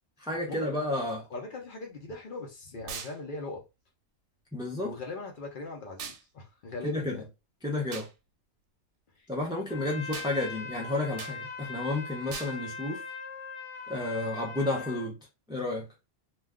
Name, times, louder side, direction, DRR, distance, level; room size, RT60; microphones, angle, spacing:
voice 1, 0.2-1.3 4.5-4.9 6.8-7.2 7.6-8.1 9.3-13.0 13.9-15.2 15.5-15.9, left 2 dB, 5° right, 0.3 m, -31 dB
voice 2, 1.3-3.6 4.8-7.3 9.2-9.3, left 2 dB, 55° left, 0.7 m, -40 dB
sound 1, 2.9-3.2 6.0-6.2 7.9-8.1 10.1-10.3 11.2-11.4 12.3-12.6, right 6 dB, 90° right, 0.9 m, -39 dB
Trumpet, 9.7-15.1, left 5 dB, 85° left, 1.0 m, -40 dB
2.3 x 2.2 x 3.5 m
omnidirectional pair, 1.2 m